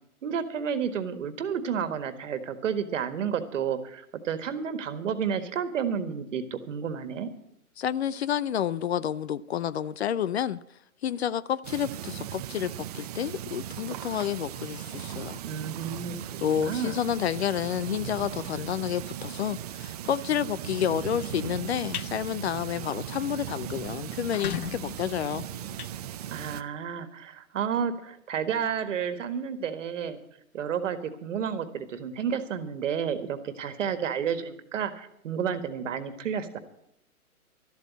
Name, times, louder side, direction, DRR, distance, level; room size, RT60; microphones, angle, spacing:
voice 1, 0.2-7.3 15.4-17.0 26.3-30.2 30.5-36.6, right 7 dB, 55° right, 1.7 m, -31 dB
voice 2, 7.8-10.6 11.0-15.4 16.4-25.5, left 9 dB, 50° left, 0.5 m, -30 dB
sound 1, 11.6-26.6, right 11 dB, 30° right, 0.5 m, -38 dB
sound 2, 21.9-22.1 22.6-22.8 23.2-23.3 23.5-23.6 24.1-26.7, left 9 dB, 75° left, 0.8 m, -38 dB
13.0 x 8.1 x 9.2 m
figure-of-eight pair, 125°, 44 cm